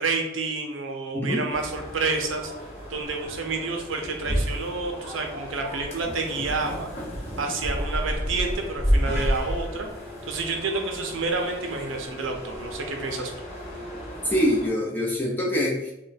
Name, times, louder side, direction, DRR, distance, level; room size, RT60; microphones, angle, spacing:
voice 1, 0.0-2.5 2.9-6.9 7.4-9.9 10.3-13.3, right 3 dB, 80° right, 3 dB, 0.6 m, -29 dB
sound 1, 1.5-14.7, equal, 35° left, 0.8 m, -31 dB
voice 2, 14.2-15.9, equal, 10° left, -4 dB, 0.5 m, -24 dB
2.5 x 2.2 x 3.9 m, 0.90 s
head